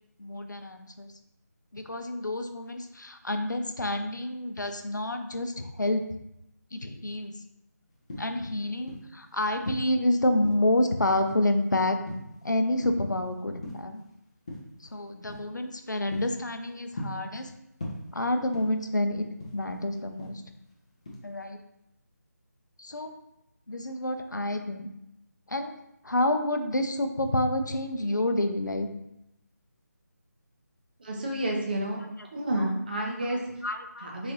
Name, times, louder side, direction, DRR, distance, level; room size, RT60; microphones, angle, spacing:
voice 1, 0.2-1.1 1.7-6.0 6.7-7.3 8.2-12.0 12.4-14.0 14.9-17.5 18.1-19.3 19.5-20.4 21.2-21.6 22.8-23.1 23.7-24.9 25.5-25.8 26.0-28.9 32.6-32.7 33.3-34.1, left 1 dB, 85° left, 6 dB, 0.5 m, -28 dB
sound 1, 7.9-9.2 9.6-10.8 11.3-11.6 12.1-13.2 13.5-14.0 14.5-14.8 15.3-15.5 15.9-17.5 17.8-18.9 19.2-20.7 21.1-21.4, left 1 dB, 20° left, 0.4 m, -39 dB
voice 2, 31.0-32.0 32.3-33.4 34.0-34.3, right 1 dB, 30° right, -1 dB, 0.6 m, -30 dB
3.8 x 2.5 x 3.1 m, 0.83 s
figure-of-eight pair, 160°, 10 cm